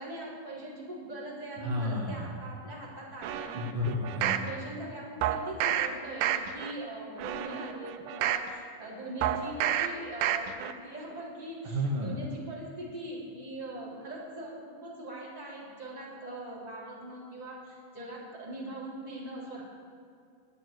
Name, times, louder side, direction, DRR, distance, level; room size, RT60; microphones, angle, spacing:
voice 1, 0.0-3.7 4.2-19.6, right 1 dB, 10° right, -8 dB, 3.3 m, -41 dB
voice 2, 1.6-2.3 3.5-4.4 11.6-12.1, left 1 dB, 70° right, -2 dB, 1.3 m, -31 dB
sound 1, 3.2-4.5 5.2-5.9 6.2-6.7 7.2-8.5 9.2-9.9 10.2-10.7 11.1-11.2, right 11 dB, 90° right, 2.4 m, -30 dB
9.3 x 9.1 x 9.5 m, 2.3 s
omnidirectional pair, 3.9 m